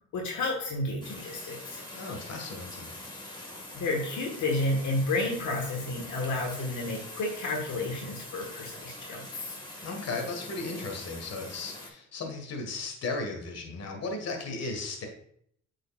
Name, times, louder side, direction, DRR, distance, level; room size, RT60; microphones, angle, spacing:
voice 1, 0.1-1.8 3.7-9.5, left 2 dB, 70° left, 0 dB, 1.5 m, -31 dB
sound 1, 1.0-11.9, left 1 dB, 15° left, 1.7 m, -44 dB
voice 2, 1.9-2.9 9.8-15.1, left 3 dB, 55° left, 3 dB, 1.6 m, -36 dB
8.4 x 5.0 x 2.4 m, 0.67 s
cardioid pair, 90°, 30 cm